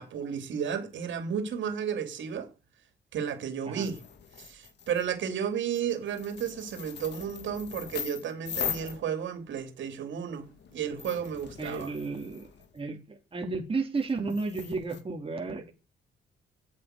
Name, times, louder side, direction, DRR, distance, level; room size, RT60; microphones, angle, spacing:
voice 1, 0.0-2.5 3.1-4.0 4.4-11.9, right 8 dB, 70° right, 3.2 m, -33 dB
sound 1, 3.8-5.1 5.7-9.6 10.2-12.8 13.9-15.0, left 8 dB, 60° left, 2.1 m, -40 dB
voice 2, 11.6-12.5 12.7-15.7, right 3 dB, 30° right, 3.1 m, -33 dB
8.6 x 8.4 x 6.7 m
cardioid pair, 90°, 20 cm